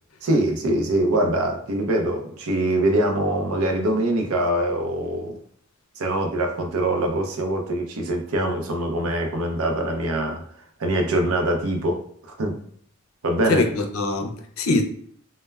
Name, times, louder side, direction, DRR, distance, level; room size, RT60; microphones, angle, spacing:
voice 1, 0.2-5.4 6.0-10.4 10.8-12.0 12.4-12.6 13.2-13.7, right 1 dB, 80° right, 0.5 m, -23 dB
voice 2, 13.5-14.8, left 2 dB, 75° left, 0.4 m, -23 dB
2.2 x 2.1 x 3.3 m
head